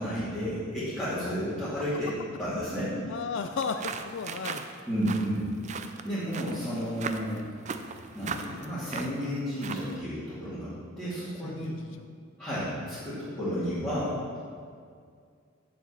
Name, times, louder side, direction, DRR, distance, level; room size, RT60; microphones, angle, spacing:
voice 1, 0.0-2.1 2.4-3.0 4.9-5.4 6.0-7.4 8.1-10.7 11.0-11.8 12.4-14.2, equal, 10° left, -14 dB, 2.5 m, -32 dB
voice 2, 3.1-4.6 11.4-11.9, left 5 dB, 65° left, 8 dB, 0.4 m, -34 dB
sound 1, 3.5-10.0, right 5 dB, 35° right, 0.4 m, -39 dB
7.4 x 5.7 x 7.3 m, 2.2 s
head